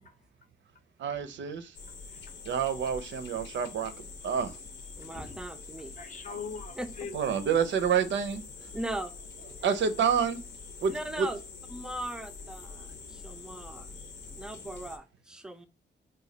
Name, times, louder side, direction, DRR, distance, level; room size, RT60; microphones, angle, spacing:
voice 1, 1.0-1.8 2.4-3.9 4.2-4.6 7.1-8.7 9.6-10.4 10.8-11.3, right 7 dB, 80° right, 0.5 m, -28 dB
sound 1, 1.7-15.0, left 4 dB, 80° left, 0.7 m, -45 dB
voice 2, 2.1-2.5 5.0-5.4 6.0-7.1, left 5 dB, 45° left, 0.6 m, -42 dB
voice 3, 5.0-5.9 6.8-6.9 8.7-9.1 10.9-11.4 11.7-13.9 14.3-15.7, right 1 dB, 5° right, 0.3 m, -38 dB
3.1 x 2.2 x 3.8 m
wide cardioid pair, 170°, 19 cm